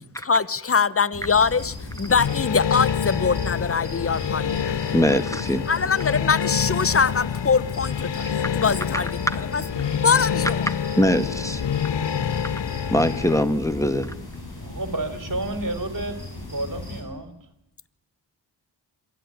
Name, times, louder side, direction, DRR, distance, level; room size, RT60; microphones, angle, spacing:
voice 1, 0.2-5.2 5.7-9.1 9.5-9.6 10.0-10.7, left 5 dB, 30° left, 0.9 m, -23 dB
sound 1, 1.1-17.0, left 2 dB, 55° left, 7.6 m, -37 dB
sound 2, 2.1-13.4, left 8 dB, 75° left, 0.8 m, -27 dB
voice 2, 4.9-5.7 9.3-9.4 11.0-11.6 12.4-14.1, equal, 5° left, 1.7 m, -22 dB
voice 3, 14.6-16.2 16.5-17.4, right 2 dB, 45° right, 3.6 m, -30 dB
23.0 x 14.5 x 9.8 m
cardioid pair, 50°, 44 cm